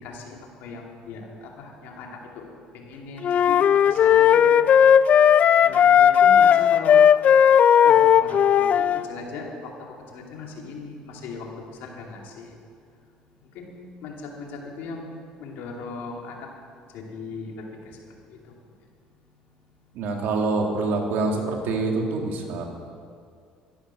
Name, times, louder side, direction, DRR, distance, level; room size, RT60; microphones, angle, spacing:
voice 1, 0.0-2.4 2.7-3.6 3.9-4.6 5.6-7.0 7.8-9.7 10.1-11.5 11.8-12.5 13.5-13.7 14.0-15.1 15.4-16.5 16.9-18.0 18.3-18.4, left 4 dB, 75° left, 0 dB, 2.7 m, -38 dB
sound 1, 3.2-9.0, left 8 dB, 50° left, 0.4 m, -16 dB
voice 2, 19.9-22.6, right 3 dB, 70° right, 2 dB, 2.3 m, -25 dB
13.5 x 11.5 x 6.3 m, 2.2 s
supercardioid pair, 80°, 3 cm